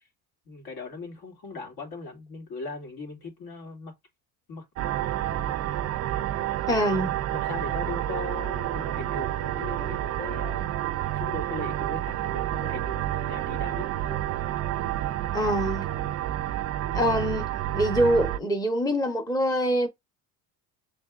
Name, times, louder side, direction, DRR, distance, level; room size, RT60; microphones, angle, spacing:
voice 1, 0.5-3.9 4.5-4.6 5.3-5.8 7.3-10.7 11.1-14.2, left 3 dB, 60° left, 2.7 m, -39 dB
sound 1, 4.8-18.4, right 13 dB, 35° right, 0.4 m, -29 dB
voice 2, 6.7-7.1 15.3-15.9 16.9-17.5 17.7-19.9, equal, 10° left, 0.8 m, -24 dB
5.3 x 3.4 x 2.5 m
supercardioid pair, 105°, 43 cm